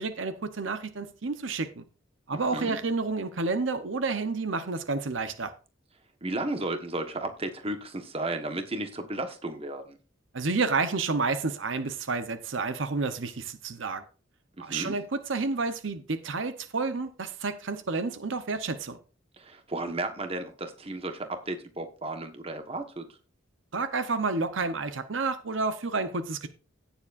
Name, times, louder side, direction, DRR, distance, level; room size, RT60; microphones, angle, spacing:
voice 1, 0.0-1.8 2.3-5.5 10.3-14.0 14.6-19.0 23.7-26.5, right 3 dB, 70° right, 0.8 m, -30 dB
voice 2, 2.3-2.8 6.2-10.0 14.6-14.9 19.4-23.0, right 2 dB, 30° right, 1.3 m, -34 dB
17.0 x 7.2 x 2.5 m
head